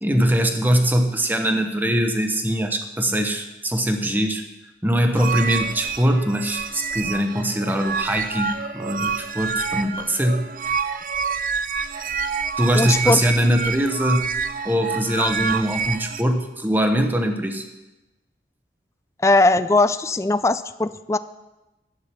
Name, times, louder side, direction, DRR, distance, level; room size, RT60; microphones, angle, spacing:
voice 1, 0.0-4.4 4.8-10.5 12.6-14.3 14.6-17.6, equal, 10° right, 5 dB, 0.9 m, -22 dB
sound 1, 5.1-16.2, right 5 dB, 50° right, 0.5 m, -28 dB
voice 2, 12.7-13.2 19.2-21.2, left 2 dB, 15° left, 13 dB, 0.3 m, -19 dB
11.5 x 8.7 x 5.9 m, 1.0 s
head